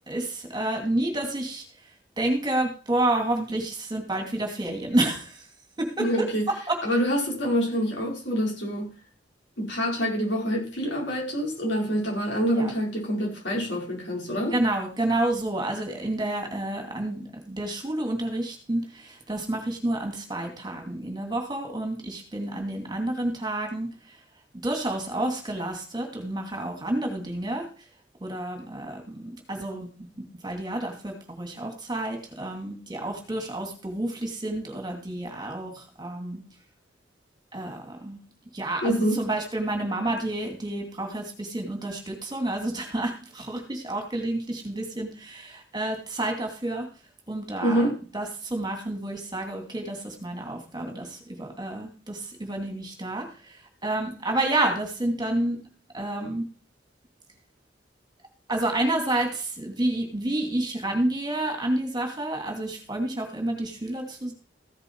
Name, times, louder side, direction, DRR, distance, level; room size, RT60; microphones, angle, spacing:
voice 1, 0.1-1.6 2.2-5.4 5.8-6.2 6.7-6.8 12.5-12.7 14.5-23.9 24.6-27.7 28.2-29.9 30.4-36.4 37.5-38.2 38.5-46.9 47.3-47.9 48.1-53.3 53.8-55.6 55.9-56.4 58.5-64.3, right 1 dB, 25° right, 3 dB, 2.6 m, -29 dB
voice 2, 6.0-6.5 6.8-8.9 9.6-14.5 38.8-39.2 47.6-47.9, equal, 70° left, -1 dB, 5.1 m, -26 dB
15.0 x 7.8 x 4.7 m, 0.37 s
head